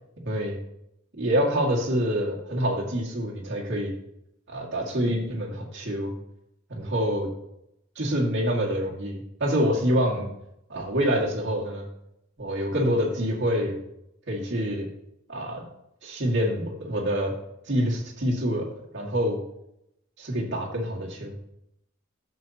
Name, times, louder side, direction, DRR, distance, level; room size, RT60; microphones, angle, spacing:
voice 1, 0.2-0.6 1.2-4.0 4.5-6.1 6.7-7.3 8.0-10.3 10.7-11.8 12.4-13.8 14.3-14.9 15.3-15.7 16.0-17.4 17.7-18.7 18.9-19.4 20.2-21.4, equal, 60° right, -3 dB, 2.2 m, -26 dB
11.5 x 7.0 x 3.0 m, 0.82 s
head